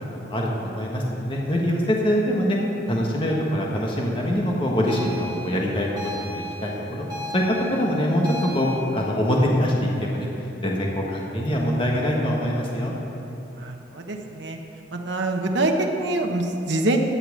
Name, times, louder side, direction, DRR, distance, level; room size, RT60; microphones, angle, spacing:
voice 1, 0.1-2.6 2.9-5.9 6.3-7.0 7.3-10.3 10.6-12.9, equal, 30° left, -2 dB, 1.4 m, -24 dB
sound 1, 4.9-8.7, left 1 dB, 20° right, 3.0 m, -35 dB
voice 2, 13.6-14.6 14.9-17.0, right 2 dB, 75° right, 3 dB, 1.1 m, -25 dB
13.5 x 5.9 x 8.5 m, 2.9 s
head